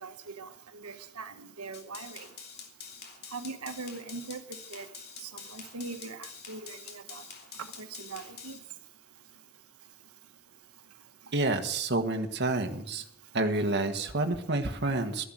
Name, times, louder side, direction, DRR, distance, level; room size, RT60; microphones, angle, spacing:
voice 1, 0.0-0.5 0.8-2.3 3.3-4.4 4.7-4.8 5.2-6.2 6.5-6.8 7.1-7.2 7.8-8.6, right 3 dB, 90° right, 8 dB, 1.5 m, -41 dB
sound 1, 1.7-8.6, left 6 dB, 45° left, 3.0 m, -46 dB
voice 2, 11.3-13.0 13.3-15.2, right 2 dB, 50° right, 6 dB, 1.5 m, -29 dB
14.0 x 11.5 x 7.7 m, 0.70 s
head